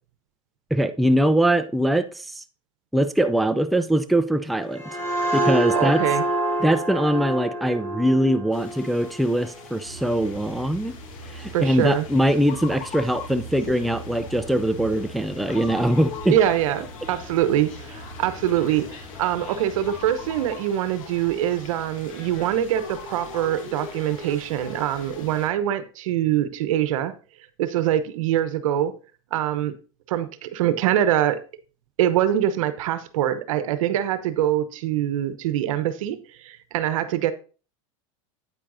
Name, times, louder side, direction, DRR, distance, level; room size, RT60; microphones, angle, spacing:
voice 1, 0.7-2.4 2.9-4.8 5.3-6.0 6.6-10.9 11.3-16.4, right 1 dB, ahead, 0.4 m, -22 dB
sound 1, 4.5-10.0, right 1 dB, 20° left, 4.6 m, -27 dB
voice 2, 5.7-6.2 11.5-12.1 16.3-27.1 27.6-28.9 29.3-29.8 30.1-31.4 32.0-37.3, right 11 dB, 75° right, 0.9 m, -24 dB
sound 2, 8.5-25.5, left 5 dB, 75° left, 1.5 m, -41 dB
sound 3, 9.9-20.6, right 1 dB, 50° left, 3.0 m, -42 dB
8.8 x 8.5 x 2.6 m
hypercardioid pair, 105°, 17 cm